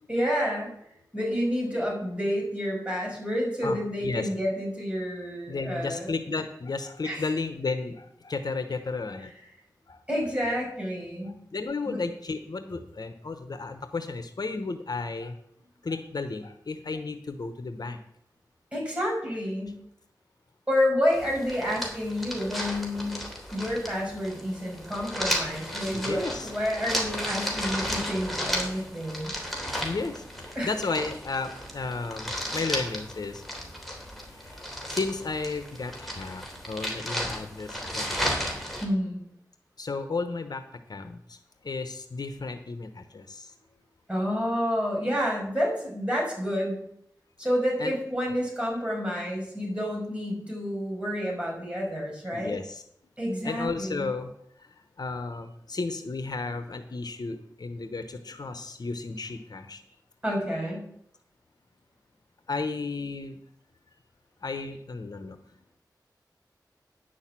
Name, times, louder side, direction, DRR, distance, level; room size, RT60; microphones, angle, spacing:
voice 1, 0.1-0.7 1.1-6.1 7.0-7.3 10.1-11.4 11.9-12.0 18.7-19.8 20.7-23.2 23.5-29.3 30.6-30.7 38.8-39.2 44.1-46.8 47.4-52.6 53.2-54.1 60.2-60.9, equal, 15° right, -3 dB, 5.7 m, -29 dB
voice 2, 3.6-4.3 5.5-9.3 9.9-10.0 11.2-15.4 15.8-18.0 25.9-26.5 28.8-28.9 29.8-33.4 34.4-38.4 39.8-40.6 40.9-41.4 41.6-43.5 47.8-47.9 52.3-52.8 53.4-54.3 54.6-54.7 55.0-59.8 62.5-63.4 64.4-65.4, left 3 dB, 65° left, 8 dB, 0.9 m, -33 dB
sound 1, 21.1-38.9, equal, ahead, 3.2 m, -34 dB
10.0 x 6.5 x 7.4 m, 0.72 s
wide cardioid pair, 65°, 7 cm